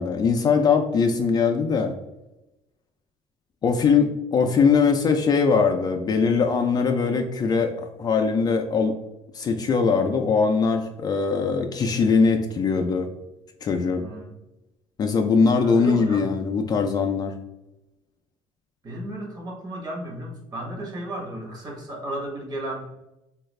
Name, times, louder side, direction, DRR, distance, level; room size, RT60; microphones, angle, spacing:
voice 1, 0.0-1.9 3.6-8.9 9.3-13.1 13.6-14.0 15.0-17.3, left 5 dB, 35° left, 4 dB, 0.3 m, -21 dB
voice 2, 15.6-16.3 18.8-22.9, right 1 dB, 35° right, 0 dB, 1.0 m, -34 dB
3.3 x 2.4 x 3.1 m, 0.94 s
cardioid pair, 110°, 12 cm